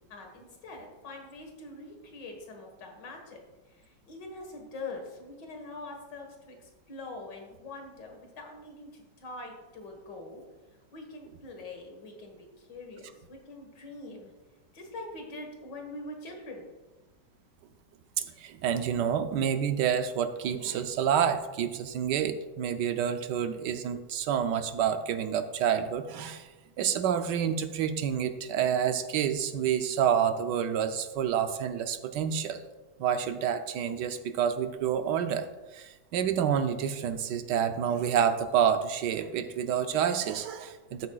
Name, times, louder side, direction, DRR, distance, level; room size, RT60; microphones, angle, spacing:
voice 1, 0.0-3.4 3.7-10.4 10.9-14.3 14.7-16.7, left 2 dB, 75° left, 2 dB, 2.2 m, -44 dB
voice 2, 18.2-26.5 26.8-32.6 33.0-35.5 35.7-41.1, right 8 dB, 75° right, 8 dB, 1.2 m, -28 dB
12.5 x 8.5 x 2.3 m, 1.2 s
omnidirectional pair, 1.9 m